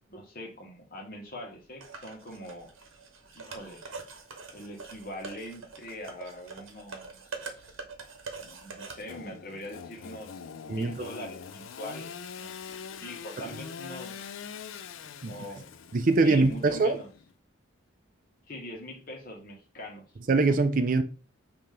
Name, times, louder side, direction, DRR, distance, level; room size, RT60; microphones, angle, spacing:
voice 1, 0.1-2.7 3.3-3.8 4.5-7.8 8.4-10.4 10.7-12.1 12.4-12.6 13.0-14.1 15.3-15.8 16.2-17.1 18.5-20.0, equal, 45° left, 1.2 m, -42 dB
sound 1, 1.8-9.0, right 4 dB, 80° right, 0.9 m, -44 dB
Engine / Sawing, 9.1-17.3, left 6 dB, 75° left, 0.4 m, -43 dB
voice 2, 15.9-17.0 20.3-21.0, right 3 dB, 40° right, 0.4 m, -23 dB
5.5 x 2.8 x 3.3 m
head